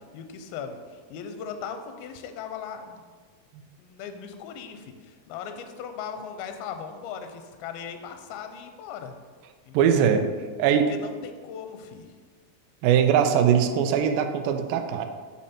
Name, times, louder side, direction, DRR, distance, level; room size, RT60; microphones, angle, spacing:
voice 1, 0.1-3.0 3.8-9.2 9.7-10.1 10.7-12.1, left 7 dB, 80° left, 7 dB, 2.3 m, -38 dB
voice 2, 9.7-10.2 10.6-10.9 12.8-15.1, right 8 dB, 85° right, 6 dB, 2.1 m, -21 dB
7.3 x 5.3 x 4.3 m, 1.5 s
omnidirectional pair, 4.7 m